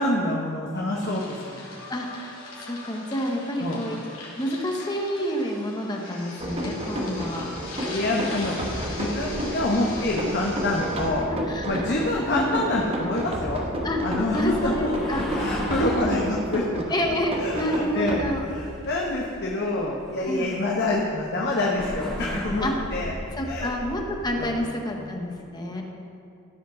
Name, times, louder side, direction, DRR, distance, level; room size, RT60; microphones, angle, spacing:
voice 1, 0.0-1.6 3.6-3.8 7.9-8.6 8.9-11.3 11.6-13.7 14.0-14.6 14.8-16.9 17.4-23.1 23.5-23.7 24.4-24.9 25.7-25.8, left 2 dB, 50° left, -2 dB, 1.0 m, -27 dB
sound 1, 1.0-11.1, left 3 dB, 65° left, 2.5 m, -41 dB
voice 2, 1.9-4.0 4.4-7.5 11.3-11.9 12.3-13.1 13.8-14.0 14.3-15.2 16.9-18.5 20.2-20.5 22.6-22.7 23.0-25.8, equal, 20° left, 1 dB, 1.0 m, -29 dB
sound 2, 6.4-18.9, equal, 25° right, 1.1 m, -31 dB
sound 3, 9.1-24.6, equal, 5° left, 2.0 m, -37 dB
14.5 x 5.0 x 6.3 m, 2.5 s
head